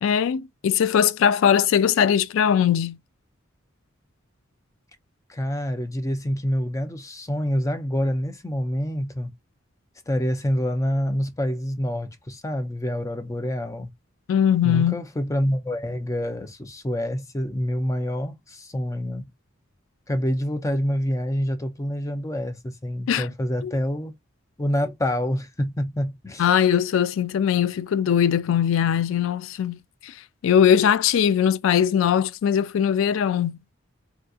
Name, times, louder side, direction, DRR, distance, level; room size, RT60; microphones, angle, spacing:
voice 1, 0.0-3.0 14.3-14.9 23.1-23.3 23.6-23.8 26.4-30.1 30.4-33.6, left 8 dB, 70° left, 0.3 m, -20 dB
voice 2, 5.3-9.3 10.1-13.9 14.6-19.2 20.1-24.2 24.6-26.5, equal, 15° left, 0.5 m, -27 dB
3.5 x 2.7 x 2.4 m
head